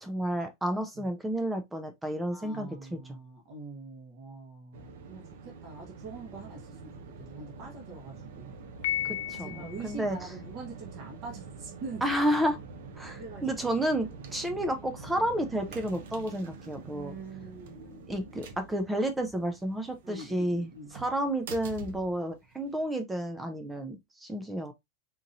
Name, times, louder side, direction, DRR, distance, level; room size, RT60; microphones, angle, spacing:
voice 1, 0.0-3.2 9.0-10.3 12.0-12.6 13.0-17.1 18.1-24.7, right 1 dB, 5° right, 0.3 m, -31 dB
voice 2, 2.3-8.5 9.4-12.0 13.1-13.4 16.9-18.1 20.0-21.0, right 3 dB, 35° right, 1.1 m, -44 dB
sound 1, 4.7-22.8, right 4 dB, 70° right, 0.8 m, -46 dB
Piano, 8.8-10.0, left 14 dB, 70° left, 0.5 m, -33 dB
3.9 x 2.8 x 2.6 m
supercardioid pair, 175°, 0 cm